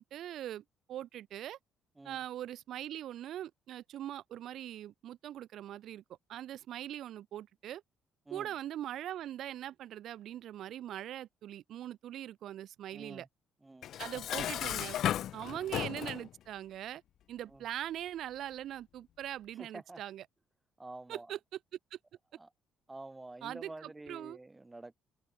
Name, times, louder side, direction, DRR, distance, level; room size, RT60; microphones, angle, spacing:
voice 1, 0.0-1.6 2.0-6.0 6.3-7.8 8.3-13.3 14.0-15.0 15.3-17.0 17.3-20.2 21.1-21.6 21.9-22.0 23.4-24.4, right 12 dB, 60° right, 4.2 m, -41 dB
voice 2, 12.9-13.3 13.6-13.9 15.5-15.6 17.5-17.6 19.6-20.0 20.8-21.3 22.3-22.5 22.9-24.9, right 2 dB, 10° right, 4.9 m, -48 dB
Dishes pots and pans, 13.8-16.3, left 11 dB, 55° left, 0.7 m, -35 dB
cardioid pair, 145°, 0 cm